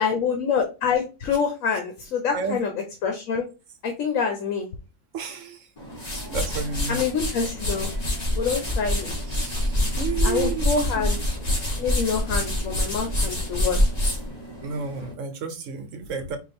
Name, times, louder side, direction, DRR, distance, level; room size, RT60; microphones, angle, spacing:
voice 1, 0.0-2.7 3.0-3.4 3.8-4.7 6.9-7.9 8.3-9.2 10.2-11.2 11.8-13.8, left 6 dB, 80° left, 1.2 m, -26 dB
voice 2, 2.3-2.6 5.1-5.7 6.3-7.1 9.3-11.1 14.6-16.4, right 5 dB, 70° right, 1.2 m, -31 dB
sound 1, 5.8-15.1, left 1 dB, 30° left, 1.5 m, -26 dB
4.5 x 2.6 x 4.2 m
omnidirectional pair, 1.4 m